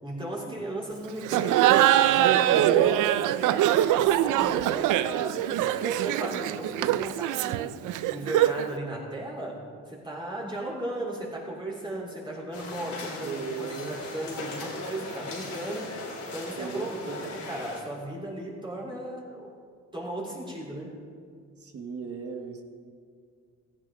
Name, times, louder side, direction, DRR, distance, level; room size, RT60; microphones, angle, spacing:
voice 1, 0.0-3.1 3.4-7.7 8.1-16.0 16.3-19.5 19.9-21.0, right 1 dB, 15° right, -4 dB, 3.7 m, -36 dB
Laughter, 1.2-8.7, right 13 dB, 90° right, 0.5 m, -23 dB
voice 2, 5.3-5.8 13.2-14.0 16.6-17.4 21.6-22.6, right 5 dB, 50° right, 4 dB, 1.5 m, -38 dB
sound 1, 12.5-17.8, left 3 dB, 75° left, 3.9 m, -38 dB
16.5 x 14.5 x 3.8 m, 2.1 s
cardioid pair, 90°, 30 cm